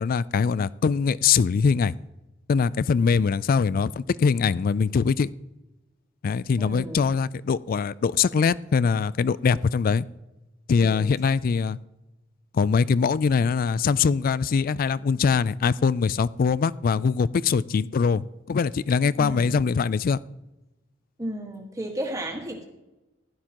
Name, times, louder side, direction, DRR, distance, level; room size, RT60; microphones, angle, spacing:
voice 1, 0.0-1.9 2.5-5.3 6.2-10.0 10.7-11.8 12.5-20.2, left 5 dB, 45° left, 20 dB, 0.3 m, -22 dB
voice 2, 6.6-7.1 10.8-11.1 19.2-19.6 21.2-22.6, right 1 dB, 15° right, 1 dB, 1.7 m, -34 dB
16.0 x 12.0 x 3.0 m, 1.0 s
head